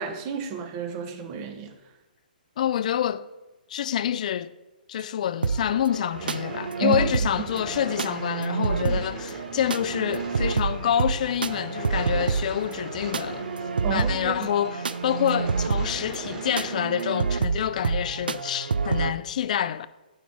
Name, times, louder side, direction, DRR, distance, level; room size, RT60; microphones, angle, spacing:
voice 1, 0.0-1.7 6.8-7.0 8.9-9.0 13.8-14.4, right 7 dB, 30° right, 0.9 m, -31 dB
voice 2, 2.6-3.3 3.7-4.5 4.9-13.5 13.9-19.9, left 10 dB, 50° left, 0.4 m, -27 dB
sound 1, 5.4-19.1, right 5 dB, 75° right, 0.4 m, -28 dB
sound 2, 6.1-16.9, right 2 dB, 15° right, 1.6 m, -41 dB
9.4 x 3.6 x 6.0 m
figure-of-eight pair, 130°, 5 cm